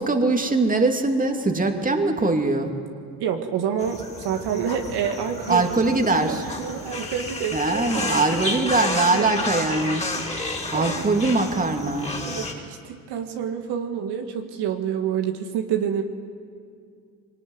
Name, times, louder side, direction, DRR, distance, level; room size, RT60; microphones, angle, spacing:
voice 1, 0.0-2.8 5.5-6.5 7.5-10.1 10.7-12.1, right 3 dB, 20° right, 4 dB, 2.6 m, -22 dB
voice 2, 3.2-8.2 9.1-9.3 10.1-11.1 12.3-16.0, right 8 dB, 65° right, 4 dB, 2.0 m, -28 dB
sound 1, 3.8-12.5, left 2 dB, 15° left, 4.0 m, -31 dB
23.0 x 18.5 x 9.6 m, 2.2 s
supercardioid pair, 80°, 44 cm